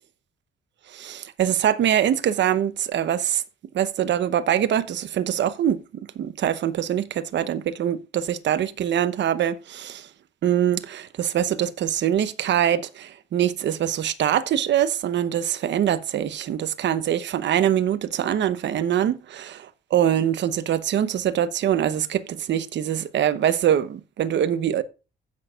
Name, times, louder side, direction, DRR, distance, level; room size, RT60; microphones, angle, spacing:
voice 1, 0.9-3.4 3.7-5.8 6.2-10.1 10.4-24.8, right 10 dB, 65° right, 0.9 m, -23 dB
16.0 x 6.2 x 2.4 m
cardioid pair, 90°, 20 cm